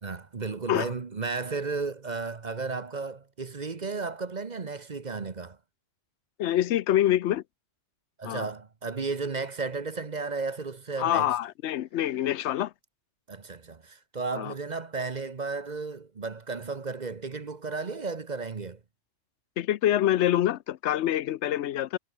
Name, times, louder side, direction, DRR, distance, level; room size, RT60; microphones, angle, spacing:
voice 1, 0.0-5.6 8.2-11.3 13.3-18.8, right 4 dB, 40° right, 1.1 m, -34 dB
voice 2, 6.4-7.4 8.2-8.4 11.0-12.7 14.4-14.5 19.6-22.0, left 12 dB, 70° left, 0.9 m, -26 dB
omnidirectional pair, 1.3 m